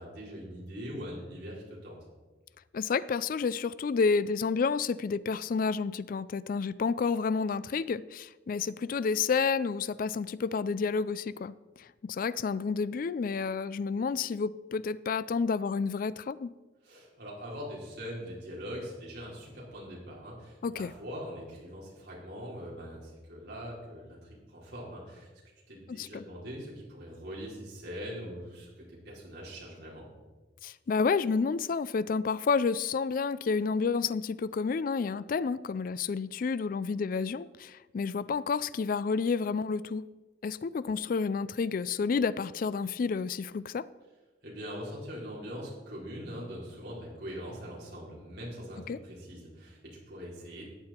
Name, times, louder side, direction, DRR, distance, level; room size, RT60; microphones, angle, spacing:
voice 1, 0.0-2.0 16.8-25.3 25.7-30.0 44.4-50.6, equal, 60° right, 4.4 m, -42 dB
voice 2, 2.7-16.5 20.6-20.9 25.9-26.2 30.6-40.0 40.4-43.9 48.9-49.0, left 5 dB, 50° left, 0.3 m, -30 dB
14.5 x 9.5 x 4.4 m
head